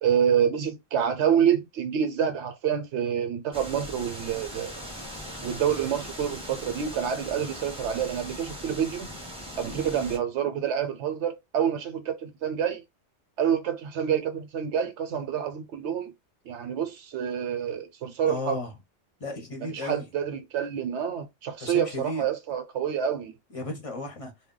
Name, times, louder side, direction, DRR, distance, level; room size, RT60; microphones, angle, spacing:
voice 1, 0.0-4.7 5.4-9.1 9.6-12.8 13.4-16.1 16.5-18.6 19.7-23.3, right 8 dB, 70° right, 0.9 m, -27 dB
sound 1, 3.5-10.2, equal, 5° right, 0.6 m, -40 dB
voice 2, 9.6-10.0 18.3-18.7 19.2-20.1 21.6-22.2 23.5-24.3, left 1 dB, 35° left, 0.6 m, -34 dB
2.2 x 2.2 x 3.7 m
omnidirectional pair, 1.2 m